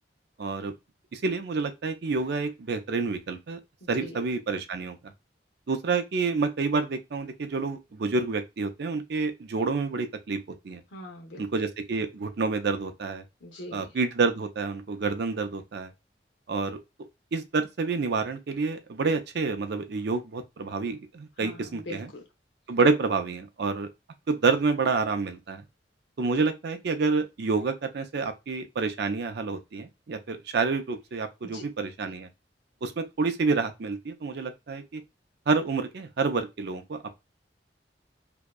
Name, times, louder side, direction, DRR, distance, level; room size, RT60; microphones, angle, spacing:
voice 1, 0.4-0.7 1.1-3.6 3.9-5.1 5.7-10.8 11.4-13.2 13.7-15.9 16.5-16.8 17.3-22.1 22.7-23.9 24.3-25.6 26.2-32.3 32.8-35.0 35.5-37.1, right 4 dB, 65° right, 0.5 m, -28 dB
voice 2, 3.8-4.2 10.9-11.5 13.4-13.8 21.4-22.2 31.4-31.6, left 1 dB, 90° left, 0.8 m, -42 dB
2.7 x 2.1 x 2.2 m
head